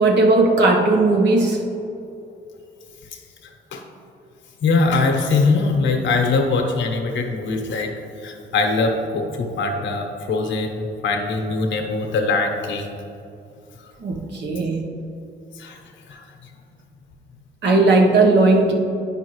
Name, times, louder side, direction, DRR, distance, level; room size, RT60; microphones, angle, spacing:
voice 1, 0.0-1.7 14.0-14.8 17.6-18.7, right 2 dB, 65° right, 1 dB, 1.2 m, -16 dB
voice 2, 4.6-7.9 8.2-12.9 15.6-15.8 16.1-16.2, left 3 dB, 70° left, 3 dB, 1.1 m, -22 dB
9.1 x 5.6 x 3.1 m, 2.6 s
cardioid pair, 90°, 20 cm